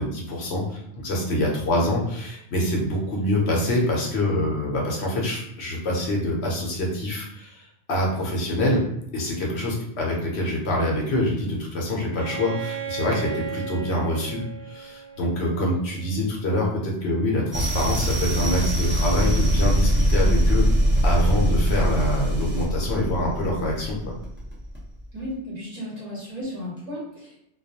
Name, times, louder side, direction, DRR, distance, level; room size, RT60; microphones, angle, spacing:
voice 1, 0.0-8.8 9.1-24.0, left 1 dB, 70° left, -2 dB, 0.9 m, -25 dB
Bowed string instrument, 12.1-15.9, right 6 dB, 70° right, 0.8 m, -35 dB
sound 1, 17.5-25.0, equal, 15° right, 0.5 m, -22 dB
voice 2, 25.1-27.4, equal, 40° right, -6 dB, 0.9 m, -34 dB
2.3 x 2.2 x 2.7 m, 0.77 s
omnidirectional pair, 1.2 m